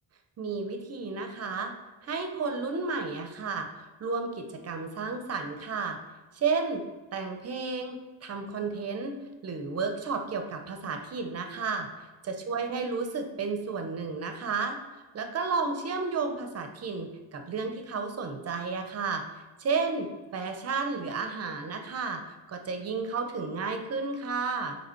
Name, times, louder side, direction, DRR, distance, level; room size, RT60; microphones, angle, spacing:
voice 1, 0.4-1.7 2.0-3.7 4.0-6.0 6.3-6.8 7.1-9.1 9.4-11.9 12.2-14.8 15.1-19.2 19.6-24.8, right 4 dB, 35° right, 5 dB, 0.6 m, -32 dB
6.7 x 3.3 x 4.4 m, 1.2 s
cardioid pair, 170°, 46 cm